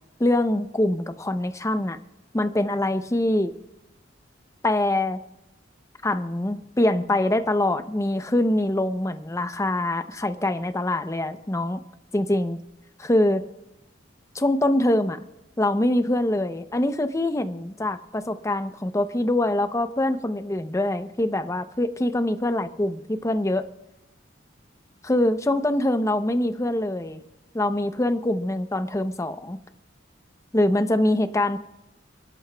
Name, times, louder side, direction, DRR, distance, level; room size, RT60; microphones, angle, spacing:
voice 1, 0.2-2.0 2.3-3.5 4.6-5.2 6.0-11.8 12.1-12.6 13.0-13.4 14.3-15.2 15.6-23.6 25.0-27.2 27.5-29.6 30.5-31.6, left 1 dB, 15° left, 10 dB, 0.6 m, -24 dB
29.0 x 11.0 x 2.2 m, 0.94 s
head